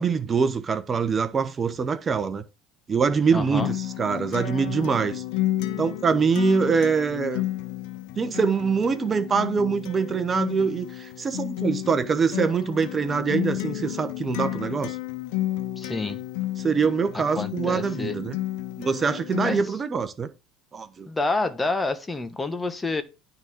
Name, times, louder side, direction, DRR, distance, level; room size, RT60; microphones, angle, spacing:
voice 1, 0.0-2.4 2.9-5.2 5.8-7.5 8.2-15.0 16.6-18.4 18.8-20.3 20.7-21.1, right 5 dB, 30° right, 1.1 m, -24 dB
voice 2, 3.3-3.7 15.8-16.2 17.1-18.2 19.4-19.6 21.1-23.0, left 3 dB, 15° left, 1.2 m, -28 dB
Acoustic guitar, 3.6-19.6, left 15 dB, 70° left, 1.1 m, -32 dB
9.6 x 4.0 x 6.2 m
hypercardioid pair, 80°, 0 cm